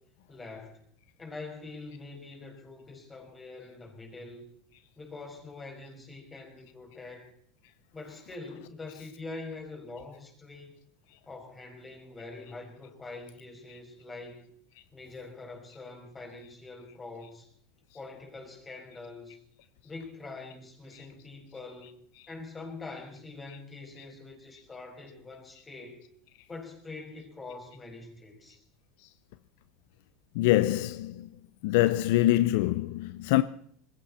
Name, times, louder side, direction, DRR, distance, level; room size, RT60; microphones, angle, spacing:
voice 1, 0.3-0.8 1.2-4.5 5.0-7.3 7.9-10.7 11.3-14.4 14.9-17.5 17.9-19.4 19.8-22.0 22.3-26.0 26.5-28.6, left 3 dB, 15° left, 5.5 m, -44 dB
voice 2, 30.4-31.3 31.6-33.4, left 15 dB, 70° left, 0.6 m, -24 dB
20.5 x 16.0 x 4.3 m
supercardioid pair, 110°, 0 cm